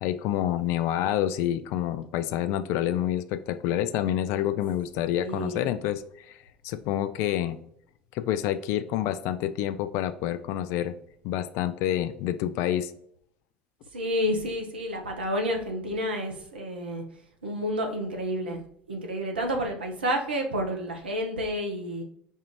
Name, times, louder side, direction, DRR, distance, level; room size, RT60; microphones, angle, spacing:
voice 1, 0.0-6.4 6.6-7.6 8.1-10.9 11.2-12.9, left 11 dB, 55° left, 12 dB, 0.3 m, -28 dB
voice 2, 5.2-5.6 13.9-17.0 17.4-18.6 18.9-22.0, equal, 80° right, 2 dB, 0.7 m, -30 dB
5.3 x 2.4 x 3.0 m, 0.69 s
figure-of-eight pair, 65°, 5 cm